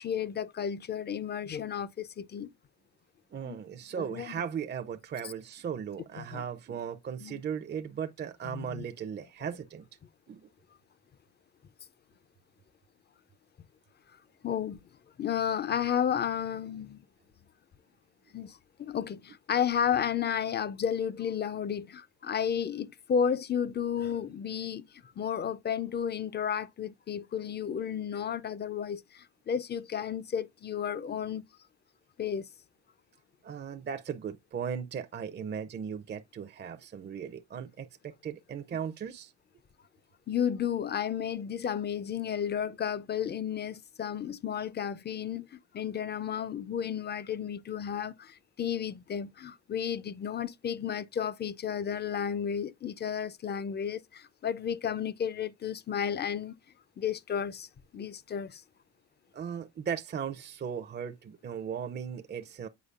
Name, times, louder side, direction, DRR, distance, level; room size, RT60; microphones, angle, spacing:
voice 1, 0.0-2.5 3.4-3.6 4.0-4.4 6.2-6.4 7.2-7.4 8.5-8.8 14.4-14.8 15.2-17.0 18.3-24.8 25.2-31.5 32.2-32.5 40.3-56.6 57.0-57.7 57.9-58.6, left 8 dB, 35° left, 0.5 m, -32 dB
voice 2, 3.3-9.8 10.3-10.5 33.4-39.3 59.3-62.7, right 7 dB, 35° right, 0.5 m, -37 dB
8.2 x 4.8 x 2.4 m
cardioid pair, 90°, 30 cm